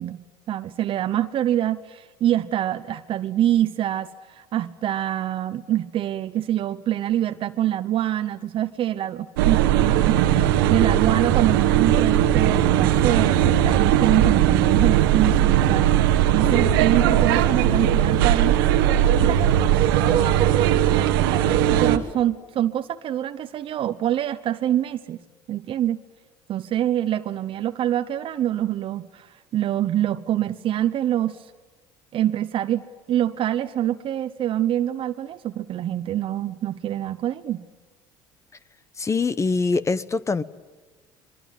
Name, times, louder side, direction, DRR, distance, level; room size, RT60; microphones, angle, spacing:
voice 1, 0.0-18.6 19.1-25.2 25.5-26.0 26.5-31.5 32.1-32.8 33.1-37.6, right 12 dB, 50° right, 0.9 m, -25 dB
sound 1, 9.4-22.0, right 11 dB, 90° right, 1.3 m, -19 dB
voice 2, 39.0-40.4, left 4 dB, 25° left, 1.0 m, -23 dB
24.5 x 22.5 x 9.2 m
supercardioid pair, 80°, 11 cm